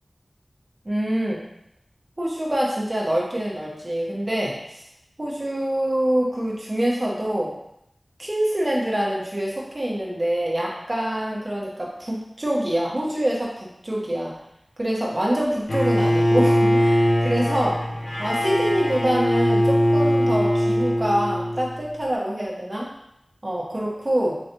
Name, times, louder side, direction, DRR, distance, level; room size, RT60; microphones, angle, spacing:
voice 1, 0.8-1.4 2.2-4.8 5.2-7.5 8.2-14.3 14.8-17.9 18.2-22.9 23.4-24.4, right 1 dB, 40° right, -4 dB, 1.2 m, -25 dB
Bowed string instrument, 15.7-21.8, equal, 75° left, 0.9 m, -21 dB
4.2 x 3.1 x 2.9 m, 0.77 s
wide cardioid pair, 45°, 0 cm